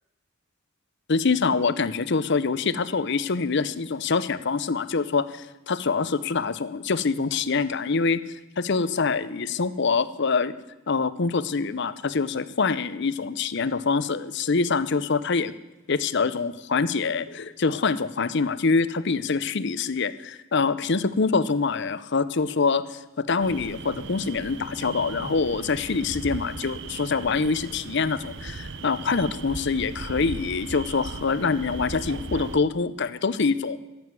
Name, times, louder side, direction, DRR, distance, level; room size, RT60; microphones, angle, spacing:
voice 1, 1.1-8.2 8.6-10.5 10.9-15.5 15.9-33.8, left 4 dB, 55° left, 15 dB, 0.6 m, -25 dB
sound 1, 23.4-32.6, right 4 dB, 55° right, 0.6 m, -38 dB
14.0 x 8.0 x 9.4 m, 1.1 s
head